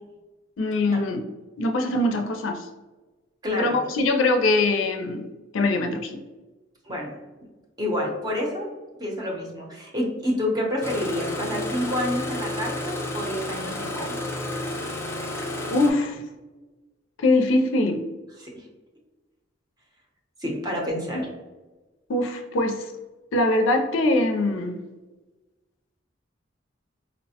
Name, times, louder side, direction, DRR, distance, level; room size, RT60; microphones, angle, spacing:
voice 1, 0.6-1.2 1.6-2.7 3.6-5.3 5.5-6.2 15.7-16.2 17.2-18.0 21.1-21.2 22.1-22.9 23.3-24.8, left 2 dB, 75° left, 4 dB, 0.4 m, -22 dB
voice 2, 3.4-3.8 6.8-7.1 7.8-8.7 9.0-14.2 18.4-18.5 20.4-21.2, left 1 dB, 20° right, -1 dB, 0.7 m, -28 dB
Engine starting, 10.8-15.9, left 1 dB, 15° left, 0.4 m, -31 dB
4.1 x 2.1 x 2.7 m, 1.2 s
head